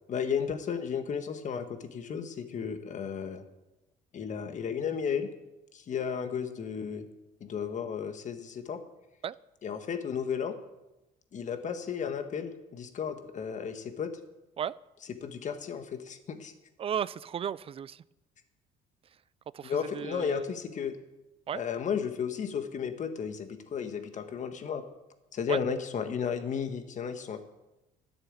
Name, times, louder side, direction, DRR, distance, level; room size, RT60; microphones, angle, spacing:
voice 1, 0.1-3.4 4.1-5.3 5.7-7.1 7.4-8.8 9.6-10.6 11.3-14.1 15.2-16.5 19.6-21.0 21.5-24.8 25.3-27.4, left 7 dB, 45° left, 8 dB, 1.5 m, -33 dB
voice 2, 16.8-18.0 19.5-20.5 21.5-21.6 25.5-25.6, right 8 dB, 35° right, 20 dB, 0.4 m, -34 dB
13.0 x 7.0 x 8.9 m, 1.0 s
cardioid pair, 110°, 17 cm